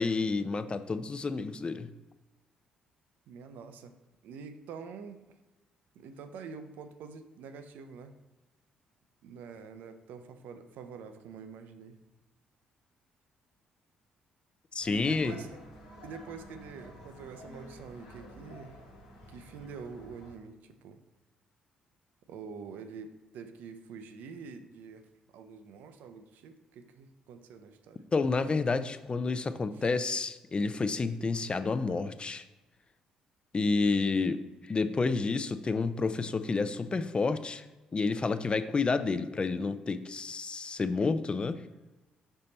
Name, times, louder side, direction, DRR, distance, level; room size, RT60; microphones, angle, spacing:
voice 1, 0.0-1.9 14.7-15.3 28.1-32.4 33.5-34.4 34.7-37.6 37.9-41.6, left 4 dB, 30° left, 11 dB, 0.5 m, -29 dB
voice 2, 3.3-3.9 4.2-5.2 6.0-8.1 9.2-12.0 14.9-15.5 16.0-18.8 19.3-21.0 22.3-25.1 25.3-28.0 29.7-29.8, right 5 dB, 65° right, 9 dB, 0.5 m, -46 dB
sound 1, 14.8-20.4, left 1 dB, 85° left, 1.2 m, -50 dB
5.5 x 4.2 x 4.0 m, 1.1 s
hypercardioid pair, 45°, 3 cm